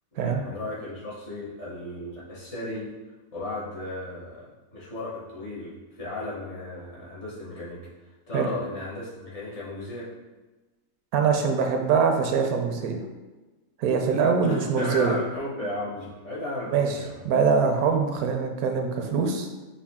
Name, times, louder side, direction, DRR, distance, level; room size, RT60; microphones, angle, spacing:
voice 1, 0.1-2.9 3.3-4.4 4.7-7.8 8.3-10.1 14.4-17.2, left 1 dB, 50° left, -7 dB, 1.4 m, -35 dB
voice 2, 11.1-13.0 13.8-15.2 16.7-16.9 17.2-19.5, right 5 dB, 80° right, 4 dB, 1.1 m, -23 dB
5.6 x 2.4 x 3.5 m, 1.2 s
omnidirectional pair, 1.6 m